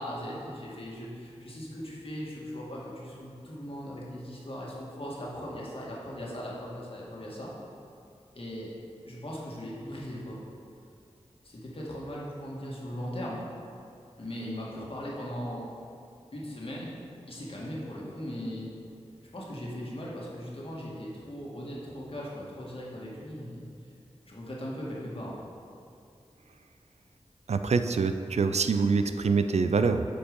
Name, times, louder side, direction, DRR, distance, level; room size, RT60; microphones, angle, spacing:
voice 1, 0.0-7.5 8.3-8.7 9.1-10.4 11.4-13.4 14.2-15.7 16.3-16.9 17.3-18.7 19.3-23.7 24.2-25.4, equal, 55° left, -5 dB, 2.0 m, -38 dB
voice 2, 27.5-30.0, right 4 dB, 75° right, 9 dB, 0.4 m, -25 dB
8.3 x 5.2 x 5.3 m, 2.4 s
wide cardioid pair, 55°, 11 cm